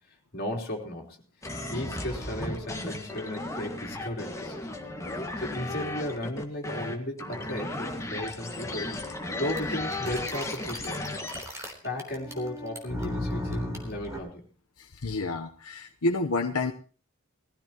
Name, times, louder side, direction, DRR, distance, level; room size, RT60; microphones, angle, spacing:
voice 1, 0.1-1.2 1.7-4.6 5.4-9.0 9.4-11.2 11.8-14.4, left 1 dB, 45° left, 0 dB, 3.7 m, -35 dB
sound 1, 1.4-11.4, left 2 dB, 15° left, 1.9 m, -35 dB
sound 2, 9.6-9.7 9.9-14.2, left 1 dB, 15° right, 3.6 m, -35 dB
voice 2, 14.8-16.7, left 2 dB, 85° left, 3 dB, 1.0 m, -29 dB
20.5 x 15.0 x 3.0 m, 0.37 s
head